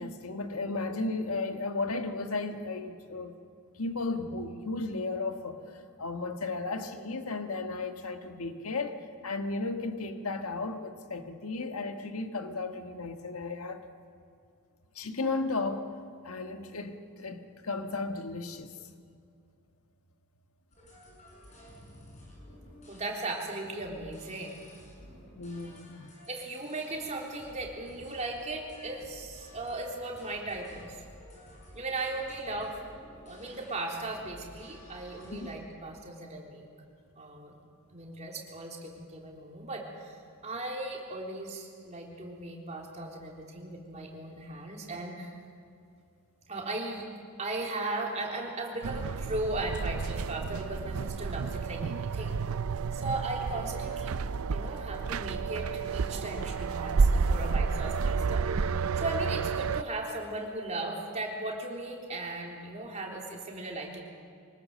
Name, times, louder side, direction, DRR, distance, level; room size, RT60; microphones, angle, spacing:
voice 1, 0.0-3.3 3.8-13.9 14.9-15.9 16.2-18.7 25.4-26.1 35.3-35.5, left 3 dB, 90° left, 1.6 m, -34 dB
sound 1, 20.7-35.5, left 1 dB, 35° left, 7.0 m, -53 dB
voice 2, 22.9-24.6 26.3-31.0 31.7-32.8 33.3-36.7 37.2-37.5 37.9-45.4 46.5-47.1 47.4-52.4 52.9-54.1 54.5-58.7 59.0-64.0, right 2 dB, 30° right, 3.5 m, -37 dB
sound 2, 48.8-59.8, right 5 dB, 80° right, 0.5 m, -30 dB
24.0 x 20.0 x 7.7 m
head